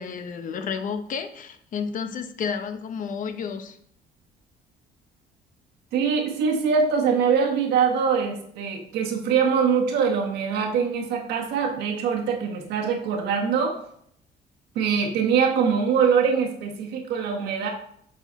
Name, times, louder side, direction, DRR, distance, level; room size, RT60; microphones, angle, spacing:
voice 1, 0.0-3.8, left 6 dB, 50° left, 8 dB, 0.9 m, -31 dB
voice 2, 5.9-13.8 14.7-17.7, right 6 dB, 80° right, 1 dB, 1.6 m, -23 dB
7.7 x 4.3 x 4.1 m, 0.66 s
cardioid pair, 110°, 17 cm